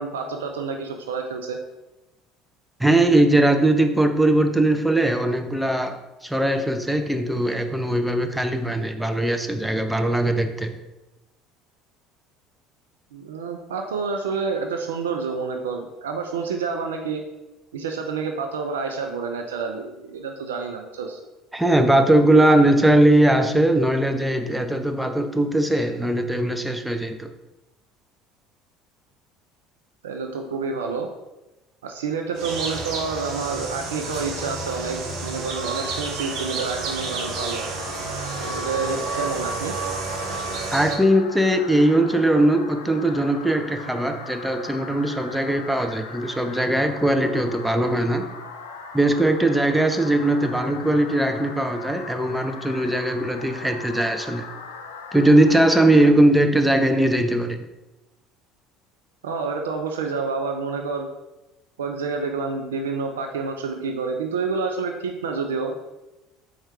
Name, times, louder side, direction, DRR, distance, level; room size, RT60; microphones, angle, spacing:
voice 1, 0.0-1.6 13.1-17.2 17.7-21.2 30.0-31.1 31.8-37.6 38.4-39.7 59.2-61.1 61.8-65.8, right 4 dB, 85° right, 3 dB, 0.4 m, -28 dB
voice 2, 2.8-10.7 21.5-27.3 40.7-48.3 48.9-54.5 55.1-57.6, right 1 dB, 5° right, 6 dB, 0.5 m, -20 dB
sound 1, 32.4-41.0, right 3 dB, 60° right, 0.8 m, -30 dB
sound 2, 36.7-56.1, left 5 dB, 85° left, 0.4 m, -39 dB
4.4 x 2.4 x 4.4 m, 1.0 s
hypercardioid pair, 70°, 0 cm